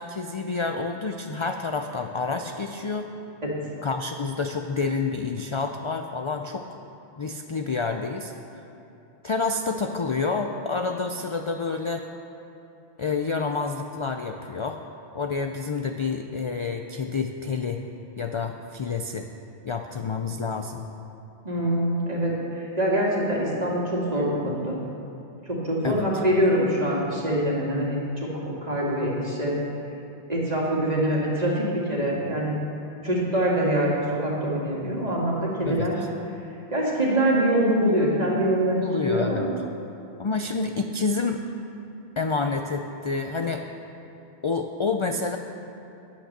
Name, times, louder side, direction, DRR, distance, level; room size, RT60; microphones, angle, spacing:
voice 1, 0.0-3.1 3.8-6.8 7.2-8.3 9.2-12.0 13.0-14.8 15.1-17.8 18.2-19.3 19.6-20.8 25.8-26.1 35.7-35.9 38.8-39.5 40.2-41.4 42.2-43.6 44.4-45.4, left 4 dB, 55° left, 5 dB, 0.3 m, -28 dB
voice 2, 21.4-24.8 25.4-29.6 30.3-32.6 33.0-33.9 34.2-36.0 36.7-39.5, right 1 dB, 35° right, -4 dB, 2.2 m, -24 dB
10.5 x 8.8 x 6.6 m, 2.9 s
omnidirectional pair, 1.2 m